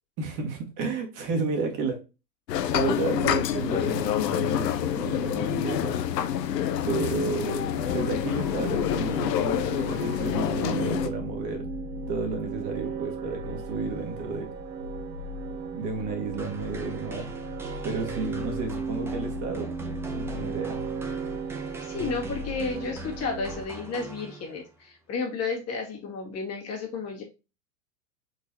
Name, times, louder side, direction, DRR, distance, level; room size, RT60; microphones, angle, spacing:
voice 1, 0.2-2.0 2.7-6.0 6.7-11.6 12.1-14.5 15.7-17.3 17.8-19.7 20.1-20.8, right 4 dB, 45° right, 2 dB, 1.9 m, -32 dB
sound 1, 2.5-11.1, left 10 dB, 75° left, 0.8 m, -27 dB
sound 2, 7.7-23.6, right 3 dB, 80° right, 1.0 m, -36 dB
sound 3, 16.4-24.7, right 3 dB, 5° right, 0.4 m, -42 dB
voice 2, 21.8-27.2, left 4 dB, 30° left, 0 dB, 1.9 m, -32 dB
4.7 x 3.9 x 2.8 m, 0.29 s
hypercardioid pair, 115°, 50 cm